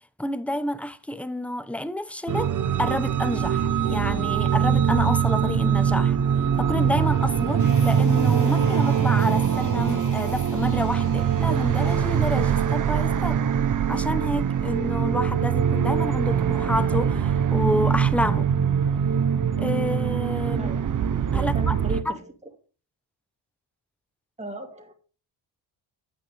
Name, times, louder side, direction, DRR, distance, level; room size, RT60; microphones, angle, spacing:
voice 1, 0.2-2.5 2.8-6.2 6.6-13.4 13.9-18.5 19.6-20.7 21.3-21.7 22.1-22.2, left 1 dB, 5° left, 0.9 m, -29 dB
sound 1, 2.3-22.0, right 8 dB, 45° right, 0.8 m, -23 dB
sound 2, 7.6-12.7, left 4 dB, 40° left, 3.1 m, -47 dB
voice 2, 21.3-22.3 24.4-24.9, right 1 dB, 15° right, 2.7 m, -35 dB
9.1 x 8.9 x 3.6 m
cardioid pair, 75°, 43 cm